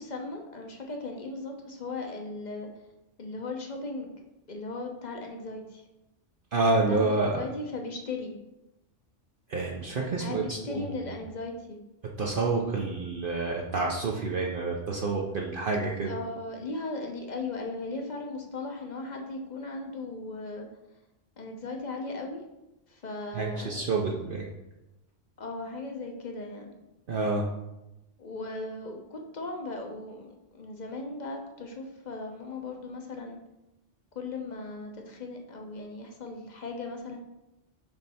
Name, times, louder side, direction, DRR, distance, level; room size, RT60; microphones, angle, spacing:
voice 1, 0.0-2.7 3.2-4.1 4.5-5.8 6.7-8.3 10.2-11.8 16.0-20.7 21.4-22.4 22.9-23.9 25.4-26.7 28.2-33.4 34.1-37.2, left 3 dB, 40° left, 2 dB, 0.8 m, -37 dB
voice 2, 6.5-7.4 9.5-10.9 12.2-16.1 23.3-24.4 27.1-27.5, right 3 dB, 55° right, -1 dB, 0.8 m, -28 dB
6.9 x 3.3 x 4.2 m, 0.95 s
omnidirectional pair, 1.2 m